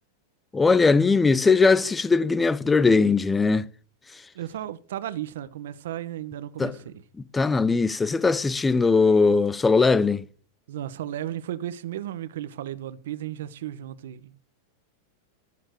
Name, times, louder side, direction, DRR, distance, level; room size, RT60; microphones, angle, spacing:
voice 1, 0.5-3.6 6.6-6.7 7.3-10.2, left 4 dB, 10° left, 0.7 m, -20 dB
voice 2, 4.3-7.0 10.7-14.4, right 12 dB, 75° right, 1.2 m, -34 dB
15.0 x 7.3 x 6.5 m
supercardioid pair, 150°, 0 cm